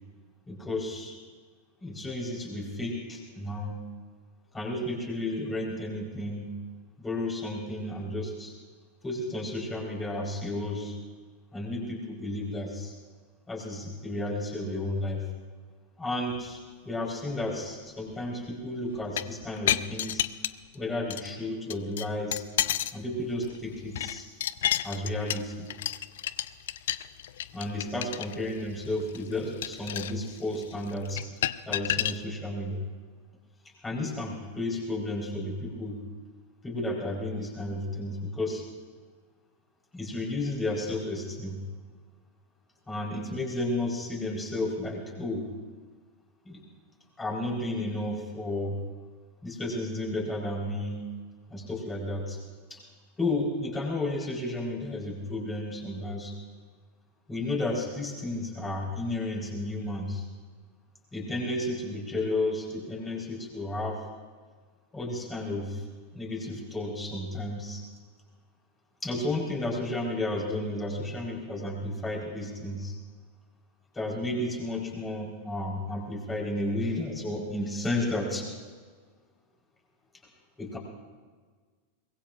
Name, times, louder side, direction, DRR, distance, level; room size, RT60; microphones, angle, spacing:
voice 1, 0.5-1.1 1.8-3.8 4.5-6.5 7.0-8.5 9.0-10.9 11.5-12.9 13.5-15.3 16.0-20.3 20.7-22.4 22.9-24.3 24.8-25.7 27.5-31.2 31.7-32.8 33.8-36.0 36.6-38.6 39.9-41.6 42.9-45.5 46.4-46.6 47.2-48.8 49.4-51.0 51.5-52.4 52.7-52.8 53.2-56.3 57.3-60.2 61.1-64.0 64.9-65.8 66.1-67.8 69.0-72.9 73.9-78.5 80.6-80.8, left 1 dB, 15° left, -2 dB, 4.5 m, -32 dB
sound 1, 18.9-20.7 21.1-21.3 21.7-23.0 23.3-32.2, left 12 dB, 60° left, 0.4 m, -31 dB
23.5 x 21.5 x 2.6 m, 1.5 s
figure-of-eight pair, 90°, 0 cm